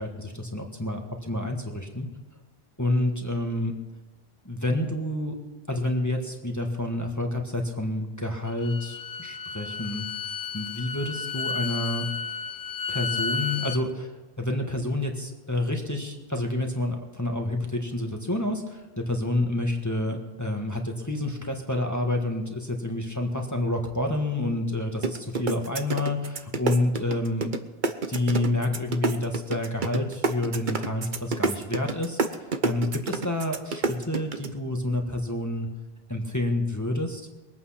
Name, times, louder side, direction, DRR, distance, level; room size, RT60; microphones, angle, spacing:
voice 1, 0.0-2.1 2.8-3.7 4.4-5.4 5.7-10.0 10.5-12.1 12.9-14.1 14.4-27.5 28.1-32.2 32.6-35.7 36.1-37.3, left 1 dB, 15° left, 2 dB, 1.6 m, -28 dB
Bowed string instrument, 8.5-13.8, left 6 dB, 75° left, 1.1 m, -32 dB
sound 1, 25.0-27.6 27.8-34.5, right 4 dB, 50° right, 1.1 m, -27 dB
22.5 x 8.8 x 5.8 m, 1.2 s
omnidirectional pair, 1.1 m